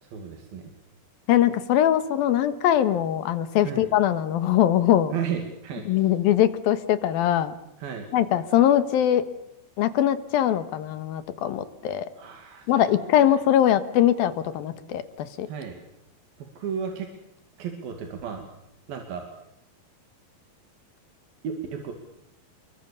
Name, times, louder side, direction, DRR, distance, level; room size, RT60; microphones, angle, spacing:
voice 1, 0.0-0.7 3.6-3.9 5.1-6.1 7.8-8.1 12.2-13.0 15.5-15.8 16.4-17.1 17.6-18.5 18.9-19.3 21.4-21.9, right 7 dB, 75° right, 4 dB, 4.2 m, -34 dB
voice 2, 1.3-5.1 5.9-7.6 8.1-9.3 9.8-12.1 12.7-15.5, left 11 dB, 80° left, 12 dB, 3.2 m, -22 dB
28.5 x 23.0 x 7.0 m, 0.82 s
omnidirectional pair, 4.2 m